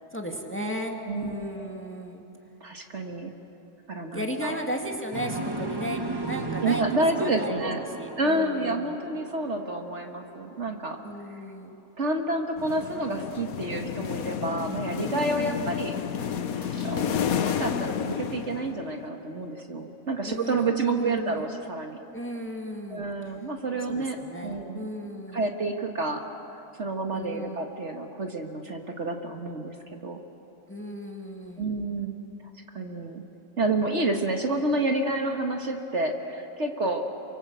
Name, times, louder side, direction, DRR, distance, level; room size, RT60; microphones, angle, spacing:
voice 1, 0.1-2.2 4.1-6.8 7.2-9.0 11.0-11.8 15.1-15.7 20.2-21.5 22.1-23.0 23.9-25.5 27.1-27.6 30.7-31.7, equal, 10° left, 2 dB, 1.9 m, -35 dB
voice 2, 1.1-1.8 2.6-3.3 3.9-4.6 6.6-7.8 8.2-11.0 12.0-16.0 16.6-22.0 22.9-24.2 24.4-24.9 25.3-26.2 26.8-30.2 31.6-32.2 32.7-33.2 33.6-37.0, right 2 dB, 50° right, 3 dB, 1.8 m, -29 dB
sound 1, 5.1-11.1, right 3 dB, 15° right, 1.4 m, -36 dB
sound 2, 12.6-19.1, left 8 dB, 70° left, 1.4 m, -31 dB
28.0 x 24.5 x 8.0 m, 2.9 s
omnidirectional pair, 1.6 m